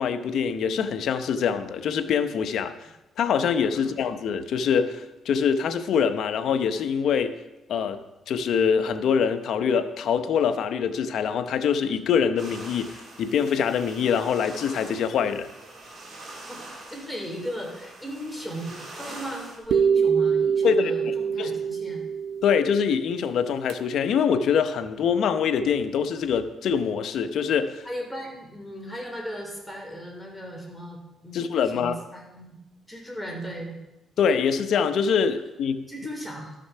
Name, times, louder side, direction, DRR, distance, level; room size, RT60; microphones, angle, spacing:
voice 1, 0.0-2.7 3.2-7.4 7.7-8.0 8.3-15.5 20.6-20.9 21.4-21.5 22.4-27.9 31.3-32.0 34.2-35.9, left 7 dB, 70° left, 9 dB, 0.8 m, -24 dB
sound 1, 12.4-19.6, right 2 dB, 50° right, 3.7 m, -43 dB
voice 2, 16.3-22.0 27.8-31.4 31.7-32.5 32.9-33.8 35.9-36.5, equal, 5° left, 0 dB, 3.2 m, -37 dB
sound 2, 19.7-23.8, right 7 dB, 80° right, 0.4 m, -25 dB
12.5 x 6.4 x 5.6 m, 0.97 s
cardioid pair, 90°, 0 cm